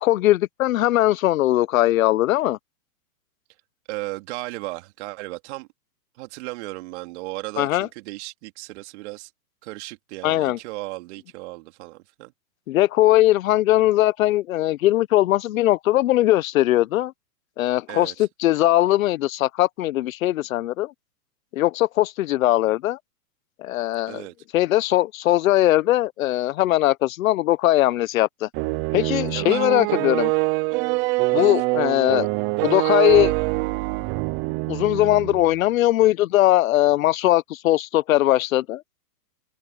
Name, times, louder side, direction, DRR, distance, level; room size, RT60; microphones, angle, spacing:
voice 1, 0.0-2.6 7.6-7.9 10.2-10.6 12.7-17.1 17.6-20.9 21.5-23.0 23.6-24.2 24.5-28.5 28.9-30.3 31.3-32.3 32.6-33.3 34.7-38.8, left 15 dB, 55° left, 1.2 m, -20 dB
voice 2, 3.9-5.7 6.2-9.3 9.6-12.3 17.9-18.1 24.1-24.3 29.3-29.7 31.3-31.5, right 22 dB, 45° right, 3.0 m, -35 dB
sound 1, 28.5-35.5, right 25 dB, 25° right, 0.7 m, -24 dB
hypercardioid pair, 135°, 47 cm